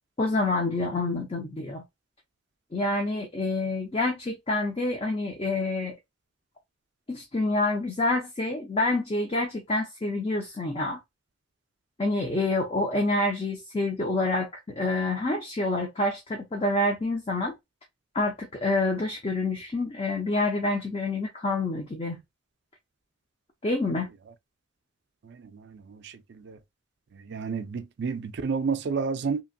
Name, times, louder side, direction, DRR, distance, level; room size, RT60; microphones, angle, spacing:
voice 1, 0.2-1.8 2.7-5.9 7.1-11.0 12.0-14.5 14.8-17.5 18.1-22.2 23.6-24.1, left 2 dB, 25° left, 0.5 m, -27 dB
voice 2, 25.2-26.1 26.4-26.6 27.3-29.4, right 5 dB, 55° right, 0.4 m, -30 dB
2.8 x 2.5 x 2.6 m
head